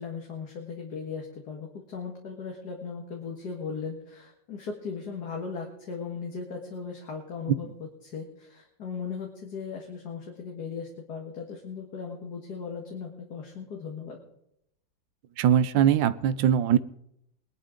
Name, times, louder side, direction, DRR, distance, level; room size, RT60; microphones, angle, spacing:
voice 1, 0.0-14.2, left 5 dB, 60° left, 1 dB, 2.4 m, -37 dB
voice 2, 15.4-16.8, right 9 dB, 85° right, 15 dB, 1.4 m, -21 dB
21.5 x 11.5 x 3.8 m, 0.75 s
omnidirectional pair, 2.0 m